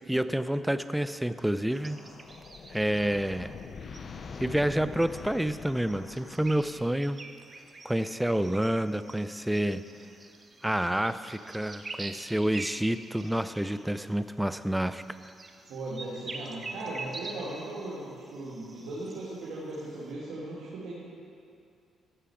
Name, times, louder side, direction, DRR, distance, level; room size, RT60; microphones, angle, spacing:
voice 1, 0.1-2.0 2.7-3.5 4.4-7.2 7.8-9.8 10.6-15.0, right 1 dB, 5° right, 12 dB, 0.4 m, -28 dB
sound 1, 1.6-7.1, left 5 dB, 50° left, 0.6 m, -44 dB
sound 2, 1.7-20.1, right 3 dB, 35° right, 0.9 m, -47 dB
voice 2, 15.7-21.0, right 2 dB, 80° right, -8 dB, 2.4 m, -38 dB
14.5 x 6.9 x 5.0 m, 2.4 s
cardioid pair, 90°, 0 cm